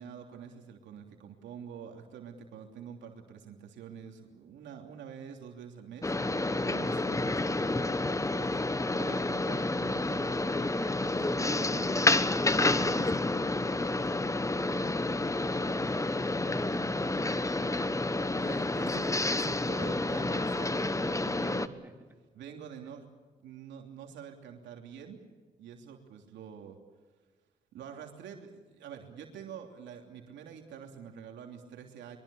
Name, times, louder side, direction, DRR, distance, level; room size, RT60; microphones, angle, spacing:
voice 1, 0.0-6.1 6.6-8.5 8.9-10.8 11.2-13.2 18.4-21.7 22.3-23.1 23.4-25.2 25.6-26.8 27.7-32.2, right 7 dB, 85° right, 3 dB, 3.1 m, -46 dB
sound 1, 6.0-21.7, left 2 dB, 15° left, 1.2 m, -29 dB
voice 2, 14.0-15.2 15.5-17.6 21.4-21.5 21.8-22.1, right 2 dB, 10° right, 3 dB, 3.4 m, -51 dB
23.5 x 23.5 x 7.1 m, 1.4 s
cardioid pair, 75°, 18 cm